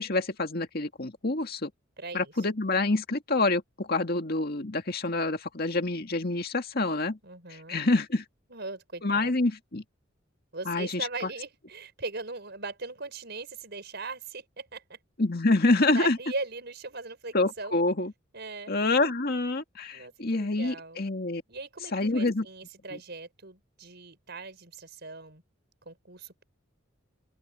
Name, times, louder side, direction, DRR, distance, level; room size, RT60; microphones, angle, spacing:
voice 1, 0.0-1.7 2.1-7.2 7.5-8.2 9.0-9.8 10.7-11.1 15.2-16.2 17.3-18.1 18.7-21.4 21.9-22.5 22.9-23.0, left 2 dB, 50° left, 2.0 m, -27 dB
voice 2, 2.0-2.3 7.2-7.8 8.5-9.3 10.5-15.0 15.9-17.8 18.3-18.7 19.9-21.0 21.5-25.4 25.9-26.4, right 3 dB, 55° right, 5.6 m, -39 dB
open air
head